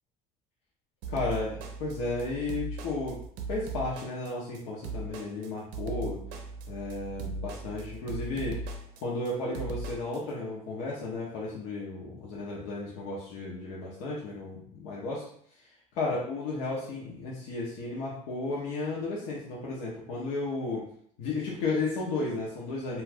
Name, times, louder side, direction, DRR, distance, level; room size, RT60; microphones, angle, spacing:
sound 1, 1.0-10.2, right 3 dB, 75° right, 0.5 m, -38 dB
voice 1, 1.1-3.2 3.5-6.2 6.7-8.6 9.0-15.2 15.9-20.8 21.2-23.0, left 3 dB, 75° left, -5 dB, 0.7 m, -33 dB
2.4 x 2.3 x 3.3 m, 0.64 s
supercardioid pair, 105°, 17 cm